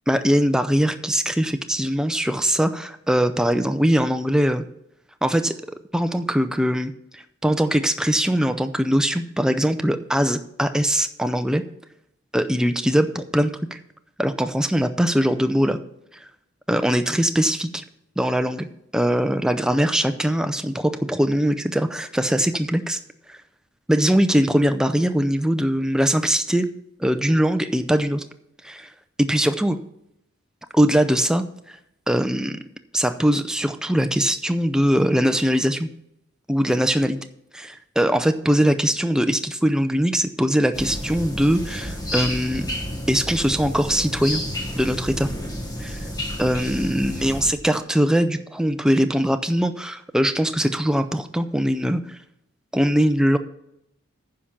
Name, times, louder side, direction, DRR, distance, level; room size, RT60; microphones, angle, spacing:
voice 1, 0.1-4.6 5.2-5.5 5.9-11.6 12.3-13.8 14.2-15.8 16.7-17.8 18.2-18.7 18.9-23.0 23.3-23.4 23.9-26.7 27.0-28.2 28.6-28.9 29.2-29.8 30.7-31.8 32.1-32.6 32.9-35.9 36.5-37.2 37.5-42.7 43.1-44.4 44.7-45.3 45.8-46.0 46.4-52.2 52.7-53.4, equal, 5° right, 9 dB, 0.5 m, -21 dB
sound 1, 40.7-47.5, equal, 20° left, 1.1 m, -31 dB
9.8 x 5.8 x 7.2 m, 0.80 s
head